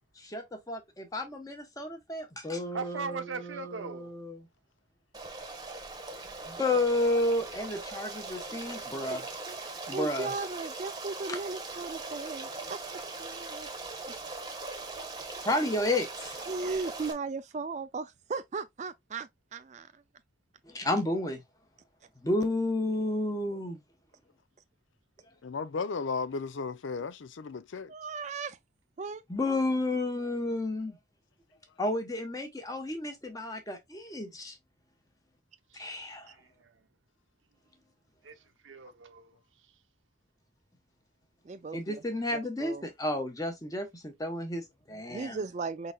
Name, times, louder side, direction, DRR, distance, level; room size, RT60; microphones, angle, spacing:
voice 1, 0.2-4.5 6.5-9.2 9.9-10.3 15.4-16.4 20.7-21.4 22.2-23.8 29.3-31.0 31.8-34.6 35.7-36.3 41.7-45.4, left 1 dB, 20° left, 0.9 m, -31 dB
voice 2, 2.7-4.1 35.7-36.8 38.2-39.3, right 4 dB, 80° right, 0.9 m, -40 dB
Stream, 5.1-17.1, right 3 dB, 20° right, 1.0 m, -40 dB
voice 3, 9.7-12.8 13.2-13.7 16.5-20.0 27.9-28.6 29.0-29.6 41.4-42.0 42.3-42.8 45.1-45.9, right 4 dB, 35° right, 0.3 m, -37 dB
voice 4, 25.4-27.9, left 4 dB, 75° left, 0.5 m, -35 dB
5.3 x 3.9 x 2.3 m
head